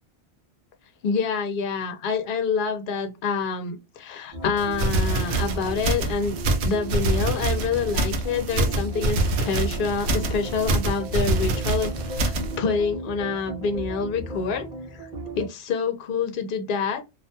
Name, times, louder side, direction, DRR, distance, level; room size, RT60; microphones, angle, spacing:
voice 1, 1.0-6.4 6.6-14.7 14.9-15.1 15.4-17.1, left 5 dB, 60° left, 0.7 m, -27 dB
sound 1, 4.3-15.5, right 1 dB, 5° right, 0.9 m, -36 dB
sound 2, 4.6-12.6, right 2 dB, 80° right, 0.8 m, -25 dB
2.4 x 2.2 x 2.7 m
omnidirectional pair, 1.1 m